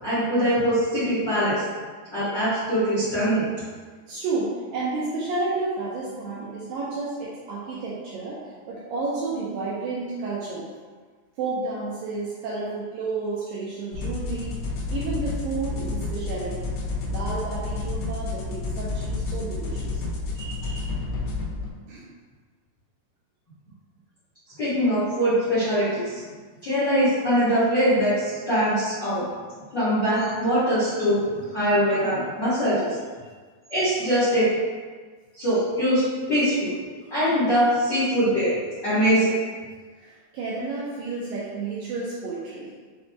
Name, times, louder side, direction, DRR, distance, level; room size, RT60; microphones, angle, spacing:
voice 1, 0.0-1.6 2.1-3.4 20.4-20.8 24.6-26.2 26.6-29.2 29.7-32.9 33.7-34.5 35.4-36.7 37.1-38.5 38.8-39.3, equal, 70° left, -14 dB, 1.0 m, -22 dB
voice 2, 4.1-8.4 8.7-10.6 11.4-14.5 14.9-16.7 17.1-20.0 21.9-22.0 40.0-42.7, right 3 dB, 80° right, -7 dB, 2.0 m, -31 dB
sound 1, 13.9-21.7, left 3 dB, 90° left, 2.7 m, -30 dB
6.3 x 2.2 x 2.7 m, 1.5 s
omnidirectional pair, 4.6 m